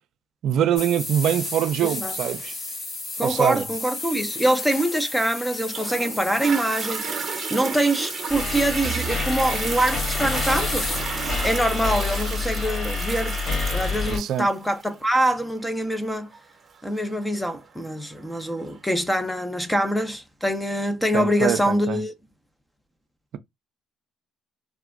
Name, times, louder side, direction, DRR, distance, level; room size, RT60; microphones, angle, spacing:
voice 1, 0.4-2.5 3.2-3.6 14.1-14.5 21.1-22.0, right 10 dB, 65° right, 0.4 m, -24 dB
sound 1, 0.8-12.2, left 2 dB, 50° left, 1.3 m, -34 dB
voice 2, 1.8-2.2 3.2-10.9 11.4-16.3 16.8-22.1, right 1 dB, 5° left, 0.6 m, -24 dB
Toilet flush, 5.7-18.7 19.3-19.4, right 6 dB, 45° right, 0.8 m, -34 dB
sound 2, 8.3-14.2, left 3 dB, 35° left, 1.7 m, -28 dB
3.3 x 2.1 x 2.4 m
hypercardioid pair, 65°, 0 cm